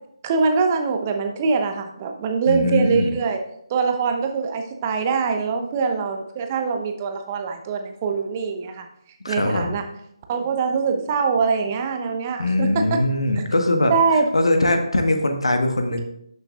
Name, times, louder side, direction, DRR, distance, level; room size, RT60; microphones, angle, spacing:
voice 1, 0.2-3.4 3.7-8.9 9.3-9.8 10.3-12.8 13.9-14.3, right 5 dB, 25° right, 4 dB, 0.8 m, -23 dB
voice 2, 2.5-3.1 9.2-9.7 12.4-13.9 14.3-16.0, left 2 dB, 75° left, 5 dB, 1.3 m, -21 dB
12.0 x 6.5 x 2.4 m, 0.73 s
figure-of-eight pair, 150°, 3 cm